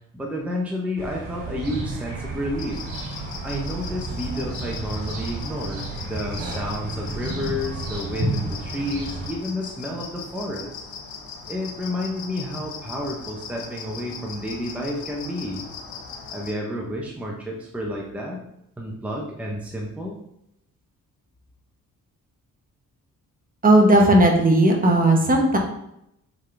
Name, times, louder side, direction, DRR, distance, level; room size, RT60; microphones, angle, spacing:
voice 1, 0.1-2.8 3.4-10.7 11.5-15.6 16.3-18.5 18.8-20.2, left 1 dB, 5° right, -2 dB, 0.8 m, -30 dB
sound 1, 1.0-9.3, right 2 dB, 65° right, 2.2 m, -32 dB
crickets car sounds, 2.6-16.5, left 5 dB, 85° left, 1.2 m, -39 dB
voice 2, 23.6-25.6, right 1 dB, 25° right, 1 dB, 1.1 m, -16 dB
7.3 x 3.8 x 3.4 m, 0.79 s
cardioid pair, 120°, 34 cm